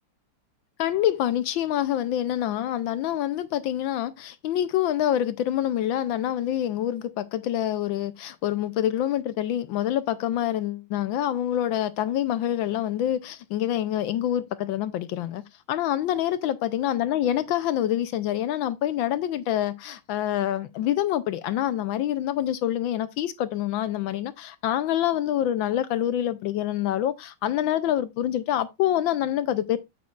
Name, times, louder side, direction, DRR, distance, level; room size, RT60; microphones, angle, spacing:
voice 1, 0.8-15.4 15.7-29.8, left 11 dB, 75° left, 1.2 m, -26 dB
8.5 x 8.3 x 2.4 m
omnidirectional pair, 2.4 m